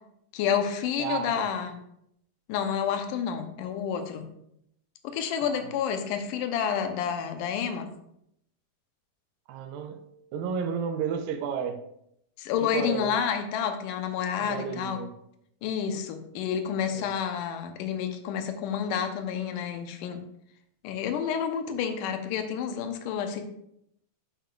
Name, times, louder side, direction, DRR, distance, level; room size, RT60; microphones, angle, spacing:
voice 1, 0.3-1.8 2.5-4.2 5.0-7.9 12.4-15.0 15.6-20.2 20.8-23.4, left 8 dB, 75° left, 6 dB, 2.0 m, -29 dB
voice 2, 1.0-1.5 5.4-5.7 9.5-10.0 10.3-11.8 12.6-13.1 14.4-15.1 16.9-17.1, right 7 dB, 80° right, 7 dB, 2.3 m, -32 dB
11.0 x 5.6 x 2.4 m, 0.76 s
omnidirectional pair, 4.3 m